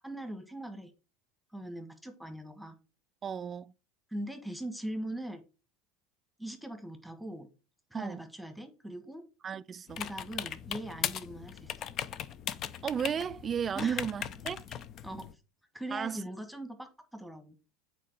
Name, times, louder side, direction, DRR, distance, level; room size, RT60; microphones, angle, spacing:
voice 1, 0.0-0.9 1.5-2.7 4.1-5.4 6.4-7.5 7.9-9.2 10.0-11.9 13.7-14.0 14.7-14.8 15.0-15.3 15.7-17.6, right 1 dB, ahead, 1.4 m, -41 dB
voice 2, 3.2-3.7 7.9-8.2 9.4-10.0 12.8-14.7 15.9-16.2, right 7 dB, 30° right, 0.3 m, -34 dB
sound 1, 9.9-15.3, left 9 dB, 45° left, 0.6 m, -39 dB
8.3 x 4.4 x 4.7 m
hypercardioid pair, 80°, 0 cm